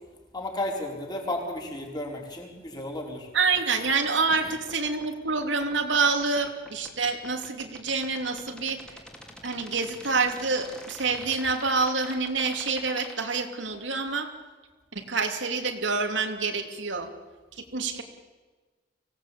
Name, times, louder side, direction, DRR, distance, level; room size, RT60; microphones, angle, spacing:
voice 1, 0.3-3.3 4.3-4.5 10.9-11.1, left 1 dB, 25° left, 0 dB, 4.5 m, -34 dB
voice 2, 3.3-8.8 9.4-14.3 14.9-17.1 17.6-18.0, right 4 dB, 85° right, 5 dB, 2.8 m, -27 dB
sound 1, 3.5-13.2, equal, 5° left, 2.8 m, -45 dB
24.5 x 17.5 x 8.5 m, 1.3 s
head